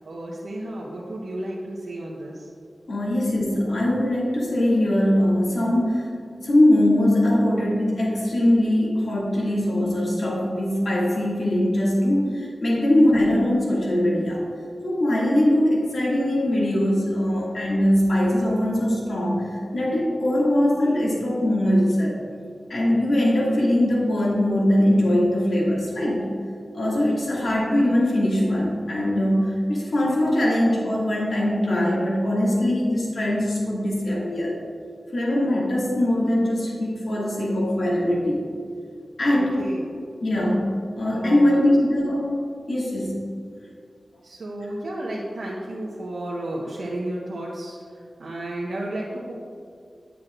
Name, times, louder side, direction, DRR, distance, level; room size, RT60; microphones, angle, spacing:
voice 1, 0.0-2.5 39.3-39.8 41.1-41.8 44.2-49.3, right 1 dB, 85° right, -6 dB, 1.0 m, -33 dB
voice 2, 2.9-6.1 6.4-14.4 14.8-22.2 22.7-26.3 26.7-34.6 35.1-38.5 39.2-39.6 40.2-42.3 42.7-43.2, left 1 dB, 70° left, -5 dB, 2.1 m, -21 dB
9.7 x 8.2 x 2.5 m, 2.2 s
wide cardioid pair, 75°, 0 cm